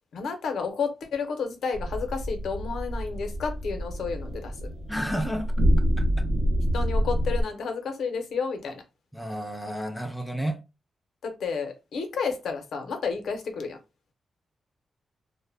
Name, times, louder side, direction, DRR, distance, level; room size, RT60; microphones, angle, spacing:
voice 1, 0.1-4.6 6.7-8.8 11.2-13.8, left 5 dB, 80° left, 0.6 m, -31 dB
sound 1, 1.7-7.4, equal, 75° right, 0.5 m, -27 dB
voice 2, 4.9-5.5 6.0-6.3 9.1-10.6, equal, ahead, 0.4 m, -31 dB
2.1 x 2.0 x 3.2 m
wide cardioid pair, 150°, 0 cm